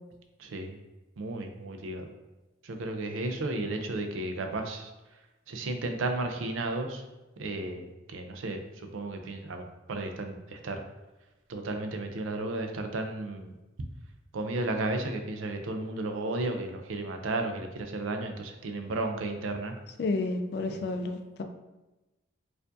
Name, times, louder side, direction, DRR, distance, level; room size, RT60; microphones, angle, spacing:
voice 1, 0.4-0.8 1.2-2.1 2.6-4.9 5.5-7.0 7.4-10.8 11.5-13.6 14.3-19.7 20.7-20.8, right 2 dB, 85° right, 5 dB, 0.4 m, -33 dB
voice 2, 20.0-21.4, left 3 dB, 55° left, 6 dB, 0.3 m, -31 dB
4.5 x 2.5 x 2.5 m, 1.1 s
head